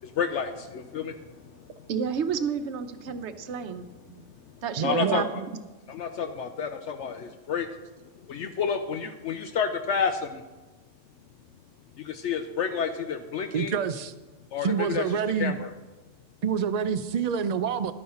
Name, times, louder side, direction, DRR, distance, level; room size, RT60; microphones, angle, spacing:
voice 1, 0.0-1.4 4.8-5.2 5.9-7.7 8.3-10.4 12.0-13.8 14.5-15.0 15.4-15.7, left 6 dB, 70° left, 7 dB, 0.9 m, -30 dB
voice 2, 1.9-3.9 4.6-5.3 5.5-5.6, right 6 dB, 65° right, 10 dB, 1.0 m, -30 dB
voice 3, 4.8-5.3 13.5-14.1 14.6-15.6 16.4-17.9, right 7 dB, 45° right, 10 dB, 0.5 m, -27 dB
12.0 x 9.4 x 4.3 m, 1.2 s
omnidirectional pair, 1.3 m